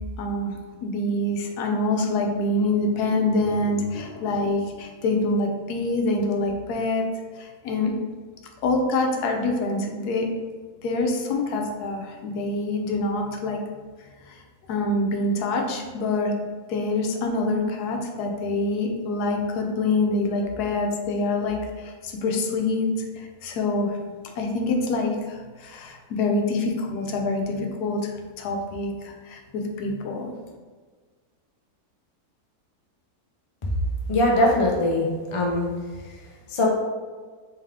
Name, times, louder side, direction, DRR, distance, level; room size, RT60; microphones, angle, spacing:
voice 1, 0.2-7.0 7.4-7.9 8.6-10.3 10.8-13.6 14.3-14.4 14.7-16.3 16.7-22.9 23.2-24.0 24.4-28.1 28.4-30.3, left 2 dB, 85° left, 2 dB, 1.2 m, -26 dB
voice 2, 34.1-35.7 36.5-36.7, left 1 dB, 50° left, -1 dB, 0.3 m, -21 dB
3.5 x 3.5 x 3.3 m, 1.5 s
omnidirectional pair, 1.6 m